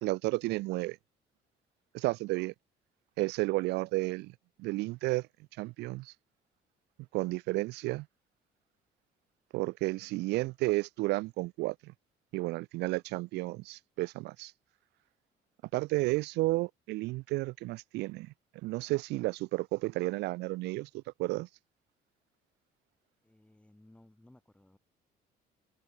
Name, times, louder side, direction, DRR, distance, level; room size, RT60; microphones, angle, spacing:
voice 1, 0.0-1.0 1.9-2.5 3.2-4.3 4.6-5.3 5.6-6.1 7.1-8.1 9.5-11.9 12.3-14.5 15.7-18.3 18.6-21.5, right 21 dB, 85° right, 0.6 m, -32 dB
voice 2, 23.2-24.8, left 1 dB, 5° left, 7.4 m, -60 dB
cardioid pair, 110°, 17 cm